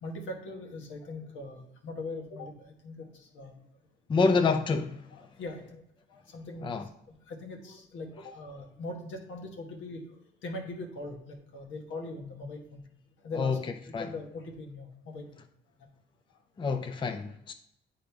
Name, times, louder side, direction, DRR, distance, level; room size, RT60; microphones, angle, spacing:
voice 1, 0.0-3.5 4.2-4.5 5.1-5.8 6.1-6.9 7.3-12.8 13.2-13.6 13.8-15.4 15.8-15.9, left 2 dB, 75° left, 1.3 m, -41 dB
voice 2, 4.1-5.1 6.6-6.9 13.3-13.6 13.9-14.1 16.6-17.5, left 4 dB, 25° left, 0.4 m, -27 dB
8.5 x 3.9 x 3.4 m
cardioid pair, 90°, 20 cm